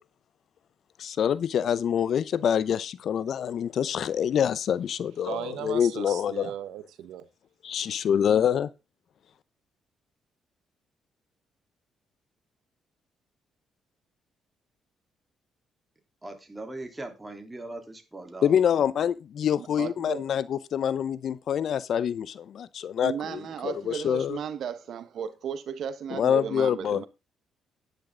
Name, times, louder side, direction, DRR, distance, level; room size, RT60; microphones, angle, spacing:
voice 1, 1.0-6.5 7.6-8.7 18.4-24.4 26.1-27.0, left 8 dB, 65° left, 0.7 m, -26 dB
voice 2, 5.2-7.3, right 12 dB, 85° right, 1.1 m, -37 dB
voice 3, 16.2-18.5, right 2 dB, 15° right, 3.5 m, -40 dB
voice 4, 19.6-20.2 23.0-27.1, right 8 dB, 65° right, 1.3 m, -35 dB
10.5 x 10.0 x 3.8 m
cardioid pair, 90°, 0 cm